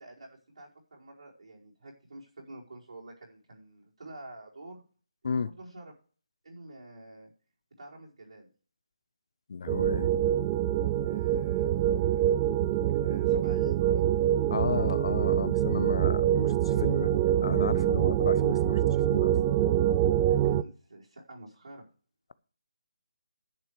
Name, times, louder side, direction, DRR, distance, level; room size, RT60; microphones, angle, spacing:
voice 1, 0.0-4.8 5.2-5.9 6.4-7.3 7.8-8.5 11.0-12.4 13.0-14.2 20.3-21.9, right 2 dB, 65° right, 4.7 m, -48 dB
voice 2, 9.5-10.1 14.5-16.5 16.8-17.1 17.4-18.8 19.1-19.4, left 5 dB, 50° left, 0.7 m, -33 dB
sound 1, 9.7-20.6, right 11 dB, 20° right, 0.4 m, -25 dB
10.5 x 8.8 x 5.0 m
figure-of-eight pair, 160°, 3 cm